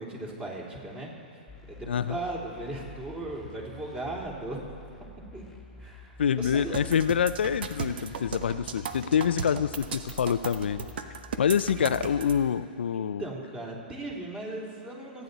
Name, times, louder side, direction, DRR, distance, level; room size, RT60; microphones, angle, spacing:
voice 1, 0.0-1.4 1.7-4.7 5.3-5.4 5.8-6.8 13.2-15.2, right 2 dB, 20° right, -2 dB, 3.1 m, -37 dB
sound 1, 1.5-12.5, left 3 dB, ahead, 1.8 m, -48 dB
voice 2, 1.9-2.2 6.2-10.9 11.4-13.2, left 8 dB, 85° left, 13 dB, 0.4 m, -26 dB
sound 2, 6.7-12.3, right 6 dB, 75° right, 1.0 m, -36 dB
27.5 x 9.3 x 4.1 m, 2.4 s
hypercardioid pair, 130°, 6 cm